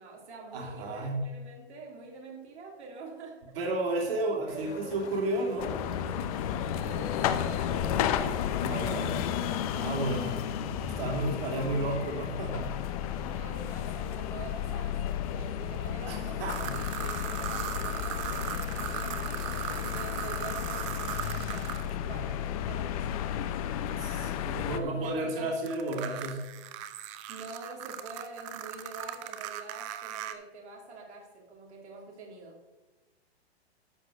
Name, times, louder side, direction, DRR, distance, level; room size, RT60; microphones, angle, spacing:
voice 1, 0.0-3.4 4.5-5.0 6.8-8.4 8.8-9.3 9.8-10.4 10.9-11.6 13.1-19.5 19.8-23.5 24.6-25.5 27.3-32.7, right 3 dB, 85° right, -1 dB, 3.1 m, -46 dB
voice 2, 0.5-1.3 3.5-5.8 8.6-9.1 9.6-10.4 10.8-12.8 13.2-13.4 16.1-16.8 23.9-26.5, right 1 dB, 60° right, 0 dB, 3.2 m, -32 dB
sound 1, 4.5-20.3, left 6 dB, 85° left, 1.2 m, -47 dB
sound 2, 5.6-24.8, left 9 dB, 35° left, 0.7 m, -33 dB
sound 3, 16.5-21.9 25.7-30.3, right 10 dB, 30° right, 0.6 m, -38 dB
13.0 x 4.7 x 6.5 m, 1.1 s
hypercardioid pair, 150°, 33 cm